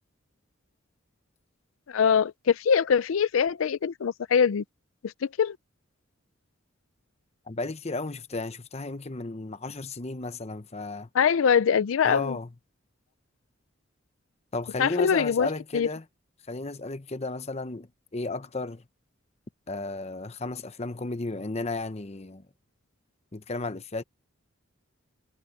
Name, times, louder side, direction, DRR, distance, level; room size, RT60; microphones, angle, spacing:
voice 1, 1.9-4.6 5.0-5.6 11.1-12.4 14.8-15.5 15.7-15.9, left 7 dB, 90° left, 0.4 m, -23 dB
voice 2, 7.5-11.1 12.0-12.5 14.5-16.0 16.5-17.9 18.1-18.8 19.7-22.4 23.3-24.0, left 3 dB, 35° left, 0.9 m, -33 dB
head